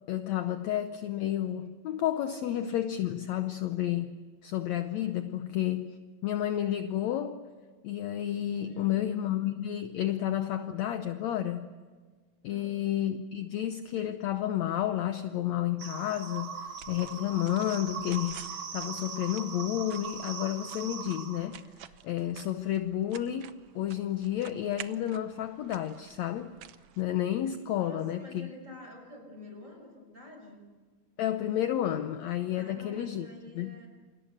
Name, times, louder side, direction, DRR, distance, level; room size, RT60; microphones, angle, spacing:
voice 1, 0.1-6.0 6.2-7.5 7.8-11.7 12.4-23.5 23.8-26.5 27.0-28.5 31.2-33.3 33.6-33.8, left 11 dB, 70° left, 1.8 m, -31 dB
voice 2, 8.6-9.0 12.4-12.8 27.7-30.6 32.6-33.9, left 2 dB, 20° right, 5.9 m, -48 dB
sound 1, 15.8-21.5, right 6 dB, 45° right, 2.9 m, -40 dB
sound 2, 16.3-27.6, right 11 dB, 80° right, 1.3 m, -51 dB
29.0 x 25.5 x 6.5 m
omnidirectional pair, 3.8 m